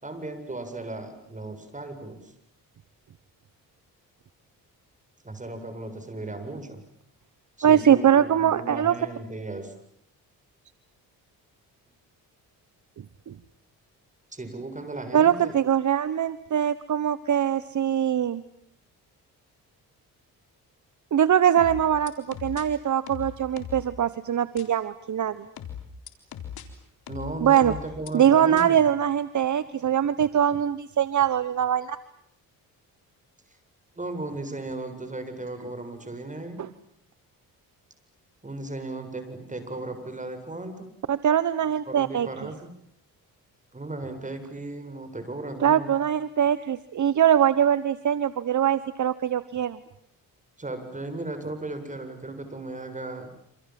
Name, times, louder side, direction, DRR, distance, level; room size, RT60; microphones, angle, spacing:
voice 1, 0.0-2.3 5.2-6.8 7.6-9.7 14.3-15.5 27.1-28.9 34.0-36.6 38.4-40.9 41.9-42.7 43.7-46.0 50.6-53.3, right 2 dB, 20° right, 8 dB, 7.4 m, -36 dB
voice 2, 7.6-8.9 13.3-13.4 15.1-18.4 21.1-25.5 27.4-27.7 28.1-32.0 36.6-36.7 41.1-42.3 45.6-49.8, right 9 dB, 55° right, 15 dB, 1.2 m, -22 dB
sound 1, 21.6-22.6 23.1-23.9 24.6-24.7 25.6-26.6 27.1-28.1 28.6-28.7, left 9 dB, 80° left, 4.0 m, -38 dB
28.0 x 27.5 x 7.7 m, 0.66 s
cardioid pair, 85°, 36 cm